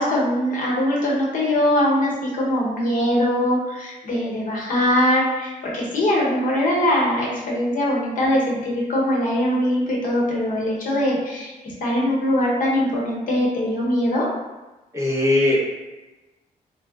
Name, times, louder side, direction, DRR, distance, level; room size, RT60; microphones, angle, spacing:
voice 1, 0.0-11.5 11.8-14.3, left 1 dB, 60° left, -5 dB, 0.9 m, -21 dB
voice 2, 14.9-15.7, left 1 dB, 20° right, -7 dB, 0.8 m, -19 dB
4.5 x 2.0 x 2.3 m, 1.1 s
wide cardioid pair, 155°, 15 cm